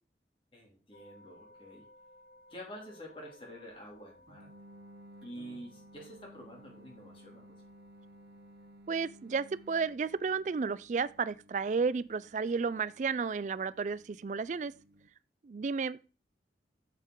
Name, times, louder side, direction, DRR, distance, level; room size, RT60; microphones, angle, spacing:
voice 1, 0.5-1.9 2.5-4.5 5.2-7.6, equal, 30° left, 2.7 m, -48 dB
sound 1, 0.9-8.8, left 1 dB, 50° left, 1.5 m, -60 dB
sound 2, 4.3-15.1, right 1 dB, 65° right, 1.0 m, -57 dB
voice 2, 8.9-14.7 15.4-16.0, right 5 dB, 45° right, 0.3 m, -32 dB
7.5 x 7.4 x 3.8 m
head